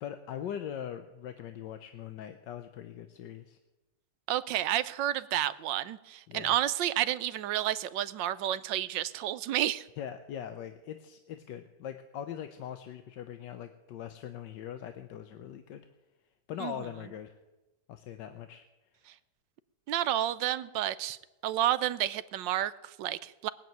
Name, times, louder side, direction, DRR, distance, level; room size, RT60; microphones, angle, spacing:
voice 1, 0.0-3.6 6.3-6.5 10.0-15.8 16.5-17.4 17.9-18.7, left 9 dB, 80° left, 8 dB, 1.5 m, -41 dB
voice 2, 4.3-9.8 16.6-16.7 19.9-21.2 21.4-23.5, right 12 dB, 90° right, 14 dB, 1.4 m, -30 dB
20.0 x 7.6 x 9.2 m, 1.1 s
omnidirectional pair, 1.9 m